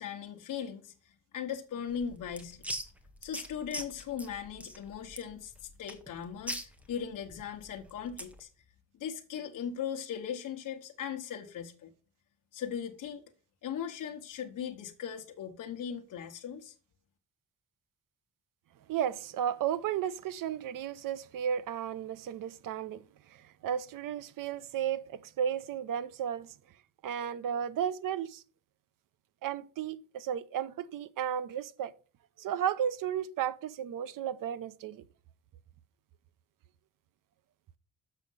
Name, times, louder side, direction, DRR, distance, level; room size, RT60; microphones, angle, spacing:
voice 1, 0.0-2.6 3.2-8.5 8.9-11.9 12.5-13.2 13.6-16.7, left 8 dB, 65° left, 0.9 m, -39 dB
sound 1, 1.9-8.4, equal, 5° right, 0.7 m, -42 dB
voice 2, 18.9-23.0 23.3-26.5 27.0-28.4 29.4-31.9 32.4-35.0, right 9 dB, 70° right, 0.7 m, -34 dB
6.5 x 6.3 x 5.4 m
wide cardioid pair, 170°, 33 cm